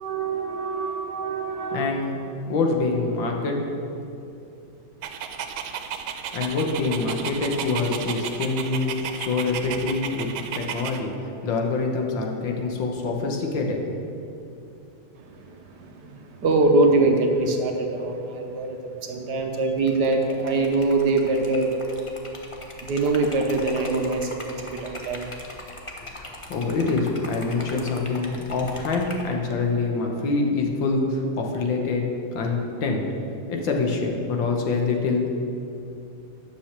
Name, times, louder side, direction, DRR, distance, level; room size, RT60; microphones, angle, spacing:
voice 1, 0.0-2.0 15.1-21.7 22.8-25.3, right 2 dB, 60° right, 3 dB, 1.3 m, -24 dB
voice 2, 1.7-2.2 2.5-3.6 6.3-11.1 11.4-13.9 26.0-32.0 32.3-33.1 33.5-35.3, left 3 dB, 70° left, 1 dB, 1.9 m, -25 dB
Dog, 5.0-11.0, right 7 dB, 90° right, 1.5 m, -33 dB
Liquid, 19.8-29.3, left 1 dB, 30° left, 0.6 m, -40 dB
9.8 x 6.3 x 7.3 m, 2.7 s
omnidirectional pair, 2.2 m